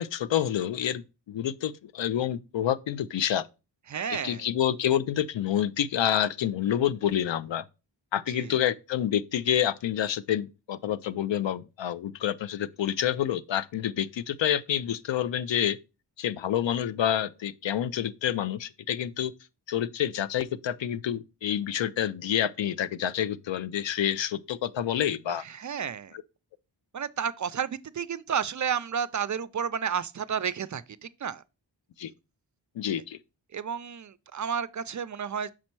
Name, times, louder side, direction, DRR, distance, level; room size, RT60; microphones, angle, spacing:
voice 1, 0.0-3.4 4.2-7.6 8.1-15.8 16.2-19.3 19.7-25.4 32.0-32.1 32.8-33.2, left 10 dB, 85° left, 0.5 m, -28 dB
voice 2, 3.9-4.5 8.3-8.5 25.3-26.2 26.9-31.4 33.5-35.5, right 7 dB, 45° right, 0.4 m, -31 dB
6.2 x 4.3 x 4.5 m
wide cardioid pair, 80°, 44 cm